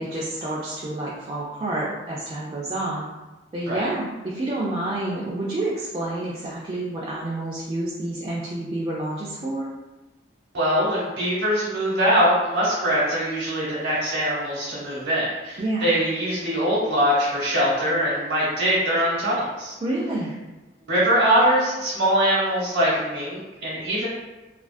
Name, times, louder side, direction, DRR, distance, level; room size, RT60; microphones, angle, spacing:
voice 1, 0.0-3.1 3.5-9.7 15.6-15.9 19.8-20.3, right 1 dB, 30° right, -6 dB, 0.3 m, -29 dB
voice 2, 10.5-19.7 20.9-24.1, equal, 80° right, -8 dB, 0.9 m, -22 dB
2.3 x 2.3 x 2.4 m, 1.1 s
head